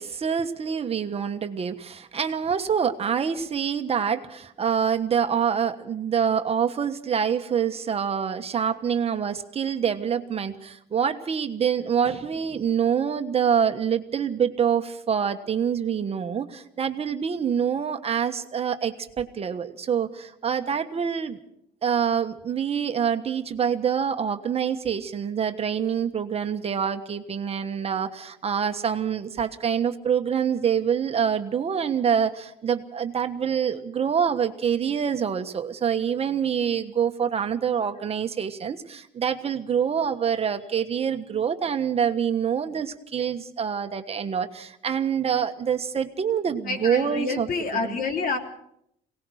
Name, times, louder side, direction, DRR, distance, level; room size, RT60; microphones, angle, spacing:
voice 1, 0.0-21.4 21.8-47.5 47.8-48.0, right 7 dB, 35° right, 7 dB, 1.3 m, -26 dB
voice 2, 46.6-48.4, left 4 dB, 55° left, 4 dB, 3.4 m, -28 dB
21.5 x 18.5 x 6.4 m, 0.74 s
cardioid pair, 110°, 17 cm